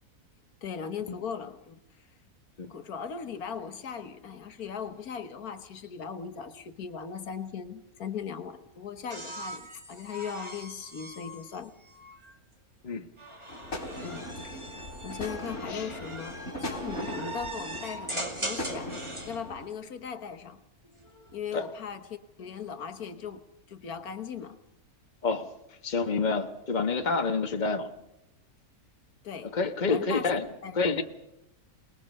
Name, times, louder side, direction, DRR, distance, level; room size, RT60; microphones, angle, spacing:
voice 1, 0.6-1.8 2.7-11.7 14.0-20.6 21.3-24.6 29.2-29.6 29.9-30.3 30.6-30.8, left 7 dB, 75° left, 1.6 m, -38 dB
sound 1, 9.1-12.4 13.2-19.4 20.8-21.4, right 1 dB, 20° right, 2.6 m, -41 dB
sound 2, 13.5-19.7, left 1 dB, 50° left, 4.0 m, -39 dB
voice 2, 25.8-27.9 29.4-30.4 30.7-31.0, left 4 dB, 30° left, 1.4 m, -28 dB
28.5 x 20.0 x 5.4 m
omnidirectional pair, 1.6 m